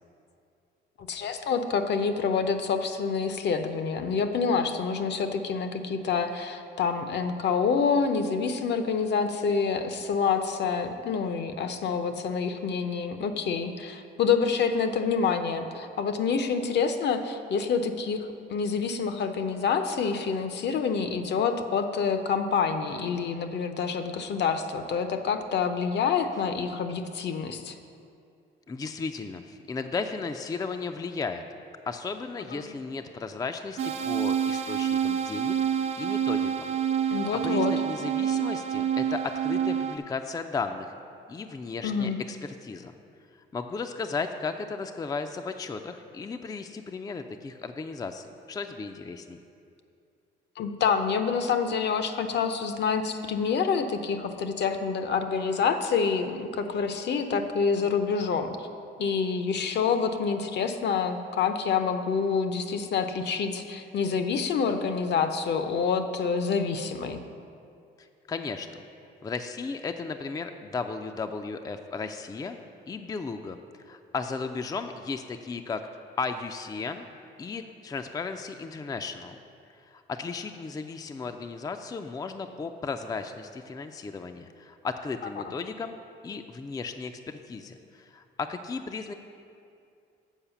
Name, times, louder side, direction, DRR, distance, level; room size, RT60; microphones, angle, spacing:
voice 1, 1.0-27.7 32.5-32.7 37.1-37.7 41.8-42.2 50.6-58.7 59.0-67.2, left 5 dB, 60° left, 8 dB, 0.6 m, -27 dB
voice 2, 28.7-31.4 31.9-35.6 36.0-36.7 37.3-40.9 41.3-42.9 43.5-49.4 68.0-68.8 69.2-72.6 72.9-73.6 73.9-77.1 77.4-79.4 79.8-86.0 86.2-89.1, left 4 dB, 20° left, 7 dB, 0.4 m, -35 dB
sound 1, 33.8-40.0, right 9 dB, 80° right, 0.6 m, -27 dB
7.3 x 4.7 x 6.9 m, 2.5 s
cardioid pair, 90°, 20 cm